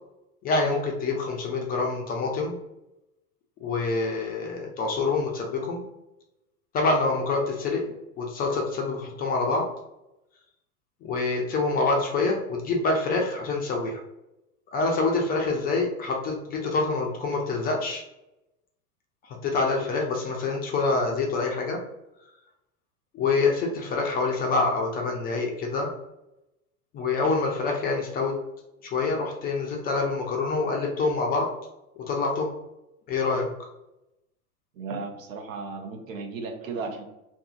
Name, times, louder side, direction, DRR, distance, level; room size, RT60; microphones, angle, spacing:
voice 1, 0.4-2.6 3.6-5.8 6.7-9.7 11.0-14.0 14.7-18.0 19.2-21.8 23.1-25.9 26.9-28.3 28.8-31.5 32.0-32.5 33.1-33.5, left 3 dB, 25° left, 0 dB, 0.4 m, -26 dB
voice 2, 34.7-37.0, right 4 dB, 70° right, 3 dB, 0.7 m, -35 dB
2.6 x 2.6 x 2.3 m, 0.91 s
figure-of-eight pair, 85°, 42 cm